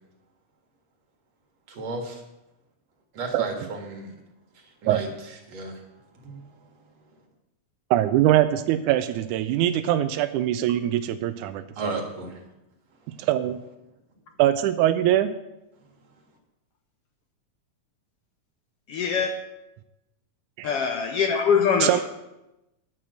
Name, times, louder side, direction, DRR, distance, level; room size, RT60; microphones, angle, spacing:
voice 1, 1.7-2.2 3.1-4.1 4.5-5.8 6.1-6.5 11.8-12.4, right 2 dB, 60° right, 3.0 m, -34 dB
voice 2, 7.9-12.0 13.2-13.6 14.4-15.3 20.6-20.7 21.8-22.0, right 13 dB, 85° right, 2.0 m, -22 dB
voice 3, 18.9-19.3 20.6-22.0, left 6 dB, 70° left, 1.5 m, -23 dB
10.5 x 6.2 x 7.8 m
omnidirectional pair, 3.4 m